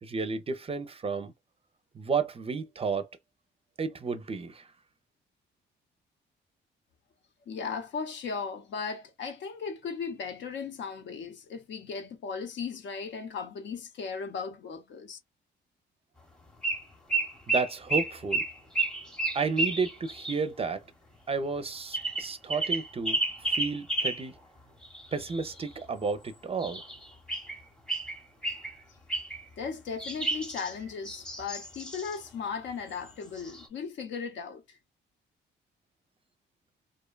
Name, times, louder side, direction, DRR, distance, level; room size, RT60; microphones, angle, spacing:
voice 1, 0.0-1.3 2.0-3.1 3.8-4.6 17.5-18.4 19.3-20.8 21.3-23.2 23.5-24.3 25.1-26.8, right 4 dB, 30° right, 0.5 m, -31 dB
voice 2, 7.5-15.2 29.6-34.8, left 5 dB, 65° left, 0.7 m, -37 dB
sound 1, 16.6-16.8 17.1-20.4 21.9-24.2 24.8-25.8 26.6-27.6 27.9-28.7 29.1-29.4 30.0-32.2 33.1-33.2 33.4-33.7, right 2 dB, 5° left, 0.8 m, -31 dB
2.6 x 2.2 x 2.2 m
cardioid pair, 90°, 20 cm